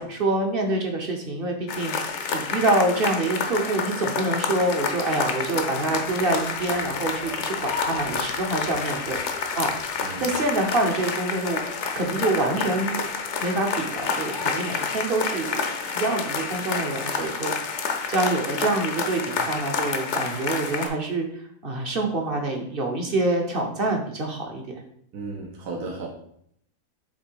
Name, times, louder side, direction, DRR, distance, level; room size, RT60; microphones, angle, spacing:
voice 1, 0.0-9.2 9.6-9.7 10.2-11.6 11.9-13.1 13.4-15.6 15.9-24.8, right 2 dB, 45° right, 2 dB, 0.9 m, -26 dB
sound 1, 1.7-20.9, left 5 dB, 55° left, 0.9 m, -29 dB
voice 2, 25.1-26.1, right 3 dB, 75° right, 0 dB, 1.5 m, -34 dB
7.3 x 3.2 x 4.6 m, 0.70 s
omnidirectional pair, 1.7 m